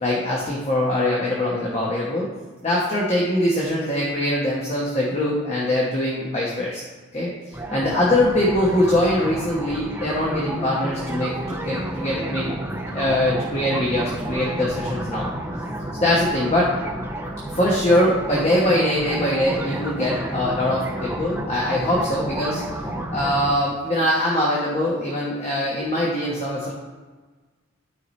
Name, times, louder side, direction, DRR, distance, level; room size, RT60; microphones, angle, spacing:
voice 1, 0.0-2.3 2.6-6.8 7.1-12.5 12.9-15.3 16.0-16.7 17.5-22.6 23.1-26.7, left 1 dB, 30° left, -4 dB, 1.1 m, -22 dB
sound 1, 7.5-23.5, right 1 dB, 10° right, 0.7 m, -30 dB
12.0 x 4.8 x 3.2 m, 1.3 s
head